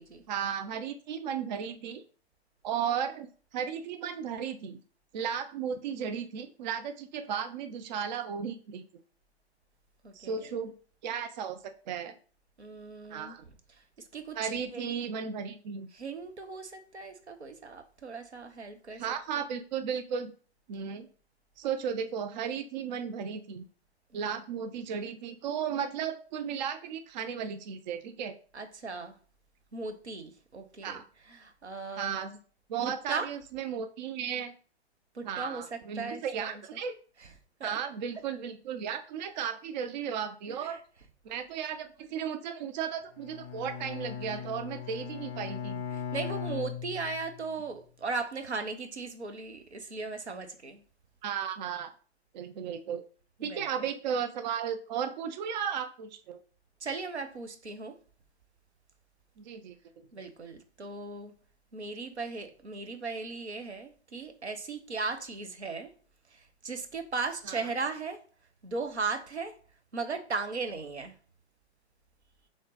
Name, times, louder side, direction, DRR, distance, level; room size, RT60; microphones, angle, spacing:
voice 1, 0.3-2.0 2.6-4.8 5.1-8.8 10.1-10.7 11.0-12.1 13.1-13.4 14.3-15.9 19.0-20.3 20.7-21.1 21.6-23.6 24.1-28.4 30.8-31.0 32.0-32.3 32.7-34.5 35.2-36.9 37.6-40.8 41.2-45.8 51.2-51.9 52.3-53.0 53.4-56.4 59.4-59.8 67.5-67.6, right 7 dB, 45° right, 0.5 m, -35 dB
voice 2, 10.0-10.5 12.6-13.4 13.7-13.8 14.1-14.9 15.9-19.0 24.1-24.3 28.5-29.1 29.7-31.0 31.3-32.4 32.8-33.3 35.1-36.6 37.2-37.3 37.6-37.8 40.5-40.8 44.3-44.4 45.9-50.8 53.4-53.7 56.8-58.0 60.1-61.3 61.7-65.9 66.3-68.2 68.6-69.6 69.9-71.2, right 4 dB, 85° right, 0.8 m, -37 dB
Bowed string instrument, 43.2-47.5, left 8 dB, 25° left, 0.5 m, -38 dB
3.8 x 3.6 x 3.8 m
figure-of-eight pair, 110°, 33 cm